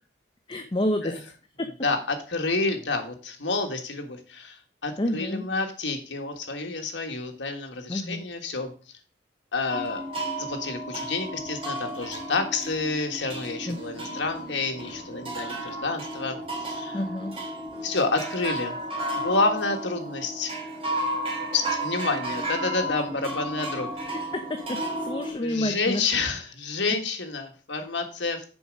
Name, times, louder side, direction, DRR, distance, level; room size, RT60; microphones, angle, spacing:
voice 1, 0.5-1.2 1.6-1.7 5.0-5.5 7.9-8.2 13.7-13.8 16.9-17.3 24.3-26.0, left 1 dB, 25° left, 6 dB, 0.6 m, -29 dB
voice 2, 1.8-8.7 9.5-10.0 10.4-17.0 17.8-18.8 19.1-20.5 21.5-23.9 25.4-28.4, left 3 dB, 80° left, 5 dB, 1.6 m, -29 dB
sound 1, 9.7-25.3, right 1 dB, 30° right, 2.5 m, -33 dB
7.0 x 5.0 x 6.3 m, 0.40 s
head